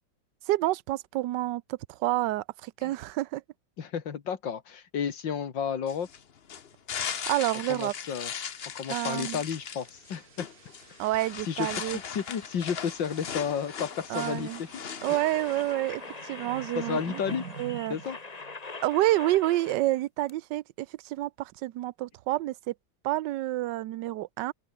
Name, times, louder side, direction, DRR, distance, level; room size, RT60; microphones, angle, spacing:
voice 1, 0.5-3.4 7.3-7.9 8.9-9.4 11.0-12.0 14.1-14.6 15.0-17.2 17.6-18.0 18.8-22.7 23.0-24.5, right 16 dB, 75° right, 1.3 m, -29 dB
voice 2, 3.8-6.1 7.7-8.3 8.7-10.5 11.4-14.7 16.8-17.4 17.9-18.2, left 7 dB, 85° left, 2.5 m, -32 dB
sound 1, 5.9-15.7, left 7 dB, 40° left, 1.0 m, -38 dB
sound 2, 8.5-19.2, right 6 dB, 55° right, 2.2 m, -49 dB
sound 3, 15.0-20.0 20.3-20.4, left 4 dB, 25° left, 1.2 m, -42 dB
open air
omnidirectional pair, 2.0 m